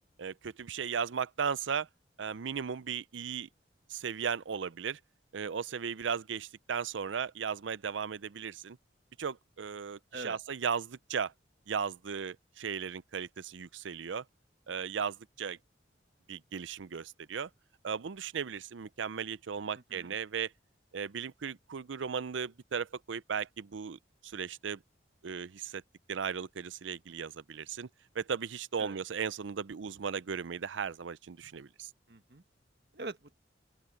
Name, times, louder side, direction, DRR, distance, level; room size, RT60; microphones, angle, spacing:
voice 1, 0.2-1.9 2.2-3.5 3.9-5.0 5.3-8.8 9.2-11.3 11.7-14.2 14.7-15.6 16.3-17.5 17.8-20.5 20.9-24.8 25.2-25.8 26.1-27.9 28.1-31.9, right 6 dB, 90° right, 0.5 m, -36 dB
voice 2, 19.7-20.2 28.8-29.0 32.1-32.4 32.9-33.3, right 3 dB, 60° right, 1.7 m, -44 dB
open air
head